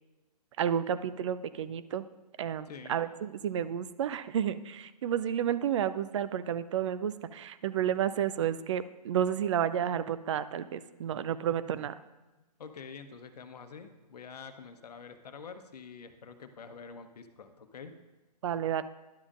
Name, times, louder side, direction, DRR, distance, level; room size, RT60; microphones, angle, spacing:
voice 1, 0.6-2.0 2.4-12.0 18.4-18.8, right 9 dB, 45° right, 14 dB, 0.4 m, -31 dB
voice 2, 2.7-3.0 12.6-17.9, left 5 dB, 70° left, 8 dB, 0.9 m, -47 dB
11.5 x 7.2 x 2.5 m, 1.1 s
hypercardioid pair, 140°, 21 cm